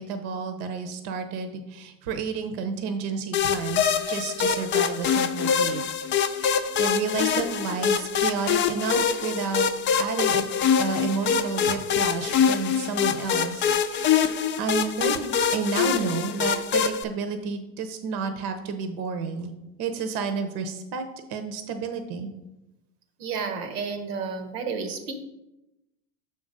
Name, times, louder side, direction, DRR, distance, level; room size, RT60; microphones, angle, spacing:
voice 1, 0.0-5.8 6.2-9.6 10.0-10.5 10.8-19.5 19.8-22.3, right 5 dB, 60° right, 7 dB, 0.9 m, -31 dB
sound 1, 3.3-17.0, left 7 dB, 30° left, 0.4 m, -24 dB
voice 2, 23.2-25.1, right 5 dB, 85° right, 7 dB, 1.2 m, -31 dB
6.8 x 3.9 x 5.3 m, 0.97 s
supercardioid pair, 95°, 45 cm